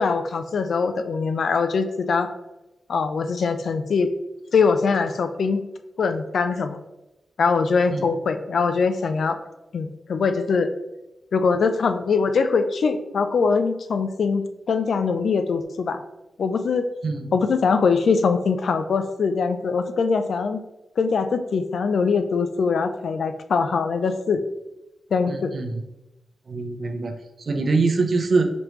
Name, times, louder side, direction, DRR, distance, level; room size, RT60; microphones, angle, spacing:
voice 1, 0.0-2.3 2.9-4.1 4.5-5.6 6.0-6.8 7.4-9.4 9.7-10.7 11.3-16.0 16.4-16.8 17.3-20.6 21.0-24.4 25.1-25.5, left 5 dB, 75° left, 9 dB, 0.4 m, -22 dB
voice 2, 17.0-17.4 25.3-25.8 26.5-28.5, right 3 dB, 60° right, 6 dB, 0.6 m, -24 dB
5.1 x 3.2 x 3.0 m, 0.97 s
cardioid pair, 55°, 0 cm